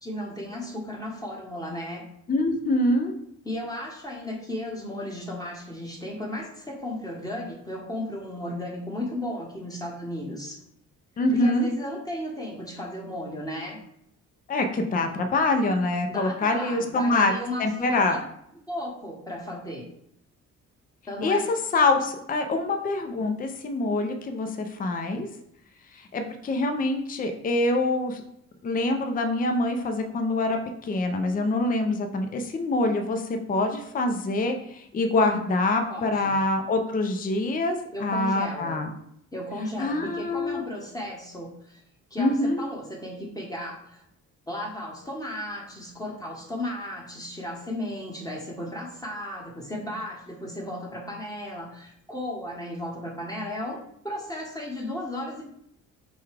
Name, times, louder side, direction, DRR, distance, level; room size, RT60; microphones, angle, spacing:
voice 1, 0.0-2.1 3.4-10.6 11.3-13.8 16.1-18.2 18.7-19.9 21.1-21.4 35.9-36.3 37.9-38.8 39.3-41.8 42.1-44.0 44.5-55.5, left 1 dB, 10° left, -1 dB, 1.2 m, -35 dB
voice 2, 2.3-3.1 11.2-11.7 14.5-17.3 17.6-18.2 21.2-25.3 25.9-28.2 28.6-38.9 39.8-40.6 42.2-42.6, left 2 dB, 30° left, 5 dB, 0.5 m, -25 dB
6.9 x 2.3 x 3.3 m, 0.74 s
cardioid pair, 90°, 30 cm